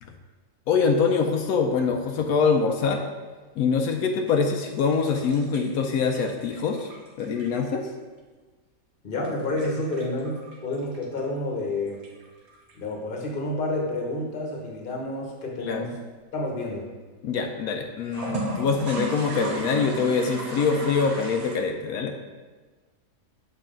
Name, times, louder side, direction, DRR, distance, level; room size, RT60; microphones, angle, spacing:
voice 1, 0.7-3.0 3.6-6.9 7.2-7.9 15.6-15.9 17.2-22.1, left 5 dB, 85° left, 4 dB, 1.1 m, -24 dB
sound 1, 4.3-7.9 9.2-11.2 11.9-12.7 18.0-21.5, right 1 dB, 80° right, 1.6 m, -35 dB
voice 2, 9.0-12.0 12.8-15.9 16.3-16.9, left 2 dB, 40° left, 0 dB, 1.2 m, -29 dB
6.6 x 4.9 x 3.8 m, 1.3 s
omnidirectional pair, 1.5 m